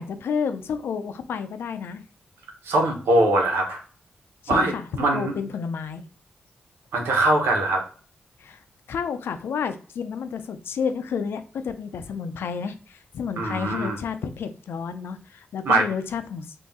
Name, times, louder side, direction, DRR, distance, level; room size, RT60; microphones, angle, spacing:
voice 1, 0.0-2.0 4.4-6.0 8.4-8.6 8.9-16.5, left 6 dB, 80° left, 9 dB, 0.6 m, -30 dB
voice 2, 2.6-3.8 4.5-5.3 6.9-7.8 13.4-14.0 15.6-15.8, right 2 dB, 90° right, 2 dB, 1.1 m, -22 dB
3.5 x 2.7 x 4.1 m, 0.40 s
cardioid pair, 50°, 4 cm